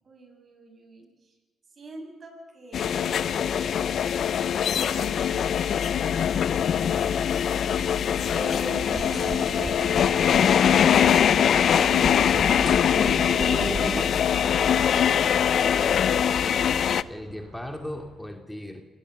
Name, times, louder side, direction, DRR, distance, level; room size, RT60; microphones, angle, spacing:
voice 1, 0.0-1.3 1.7-3.1 4.7-6.2 8.2-10.7 11.7-13.5 14.8-16.9, right 2 dB, 50° right, 3 dB, 7.1 m, -42 dB
sound 1, 2.7-17.0, left 8 dB, 65° left, 0.6 m, -22 dB
sound 2, 6.1-18.2, right 4 dB, 80° right, 7.8 m, -48 dB
voice 2, 6.7-7.2 17.1-18.8, left 1 dB, 5° left, 4 dB, 2.5 m, -38 dB
sound 3, 8.9-14.0, right 2 dB, 25° right, 3.0 m, -35 dB
27.5 x 18.0 x 6.7 m, 1.3 s
cardioid pair, 70°, 0 cm